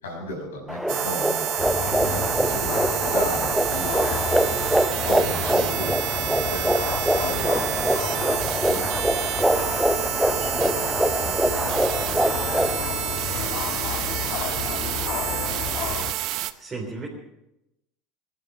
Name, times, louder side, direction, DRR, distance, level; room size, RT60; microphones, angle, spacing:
voice 1, 0.0-1.5 2.0-3.9 5.0-8.8 9.2-9.7 10.4-13.6, left 1 dB, 70° left, 0 dB, 5.9 m, -36 dB
sound 1, 0.7-12.8, right 1 dB, 5° right, 1.0 m, -25 dB
sound 2, 0.9-16.5, right 15 dB, 50° right, 0.8 m, -29 dB
sound 3, 1.6-16.1, left 6 dB, 45° left, 1.5 m, -32 dB
voice 2, 16.2-17.1, right 3 dB, 20° right, -3 dB, 3.7 m, -37 dB
21.0 x 11.0 x 6.0 m, 0.88 s
figure-of-eight pair, 70°, 0 cm